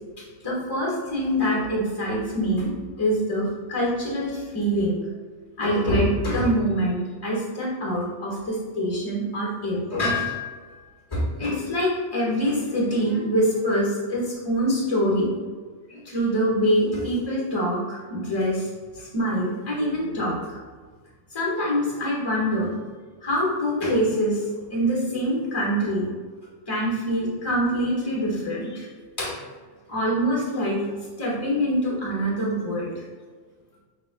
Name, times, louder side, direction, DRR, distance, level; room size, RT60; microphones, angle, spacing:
voice 1, 0.4-2.7 3.0-5.0 5.6-10.8 11.1-15.3 15.9-18.7 18.9-20.6 21.3-22.7 23.2-24.4 24.7-26.1 26.7-28.9 29.2-29.4 29.9-30.8 31.2-32.9, equal, 20° left, -5 dB, 1.4 m, -25 dB
6.0 x 3.6 x 2.3 m, 1.5 s
omnidirectional pair, 1.3 m